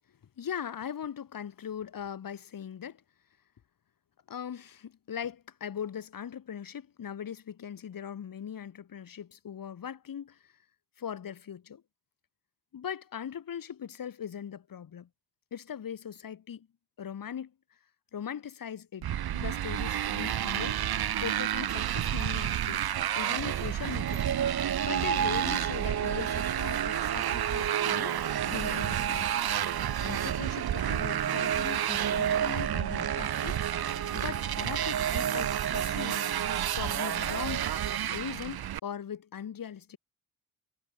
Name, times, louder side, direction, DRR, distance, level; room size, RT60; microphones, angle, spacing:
voice 1, 0.4-3.0 4.3-10.4 11.0-11.8 12.7-15.1 15.5-16.7 17.0-17.5 18.1-20.8 21.2-22.8 23.1-24.4 24.8-28.1 28.5-29.4 30.0-33.6 34.1-36.2 36.7-37.7 38.1-40.0, left 8 dB, 60° left, 6.3 m, -40 dB
Motorcycle, 19.0-38.8, right 11 dB, 75° right, 5.9 m, -31 dB
sound 1, 23.8-38.0, right 8 dB, 50° right, 1.8 m, -34 dB
cardioid pair, 70°, 38 cm